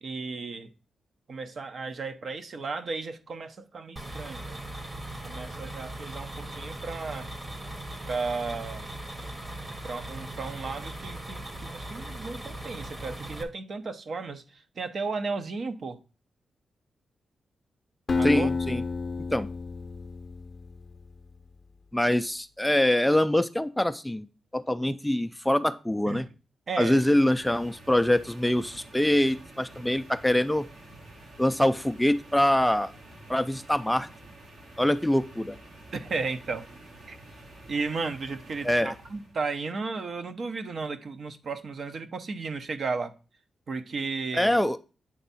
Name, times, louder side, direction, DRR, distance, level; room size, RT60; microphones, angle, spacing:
voice 1, 0.0-0.7 1.3-4.6 5.2-7.3 8.1-8.9 9.8-16.0 18.1-18.5 26.1-26.2 26.7-27.0 35.9-36.7 37.1-37.2 37.7-43.1 43.7-44.6, right 4 dB, 55° right, 0.7 m, -34 dB
sound 1, 4.0-13.4, right 1 dB, 25° right, 1.0 m, -39 dB
Acoustic guitar, 18.1-21.1, left 4 dB, 40° left, 0.6 m, -30 dB
voice 2, 18.2-18.8 19.3-19.5 21.9-24.3 24.5-26.3 26.8-30.7 31.4-32.9 33.3-34.1 34.8-35.6 38.6-38.9 44.3-44.8, left 1 dB, 5° left, 0.3 m, -24 dB
sound 2, 26.8-39.4, right 1 dB, 85° right, 2.5 m, -49 dB
8.5 x 3.5 x 4.1 m
cardioid pair, 85°, 0 cm